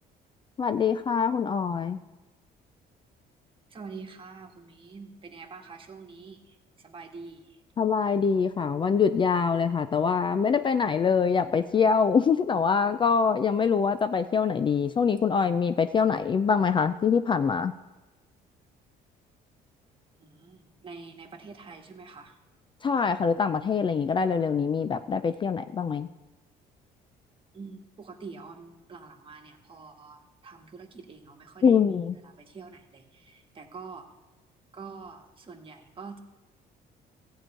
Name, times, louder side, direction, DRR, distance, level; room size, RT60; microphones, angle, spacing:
voice 1, 0.6-2.0 7.8-17.7 22.8-26.1 31.6-32.1, left 6 dB, 30° left, 11 dB, 0.4 m, -24 dB
voice 2, 3.7-7.6 20.2-22.4 27.5-32.0 32.2-34.1 34.7-36.2, right 4 dB, 30° right, 3 dB, 1.6 m, -45 dB
14.0 x 4.7 x 8.9 m, 1.1 s
cardioid pair, 110°, 17 cm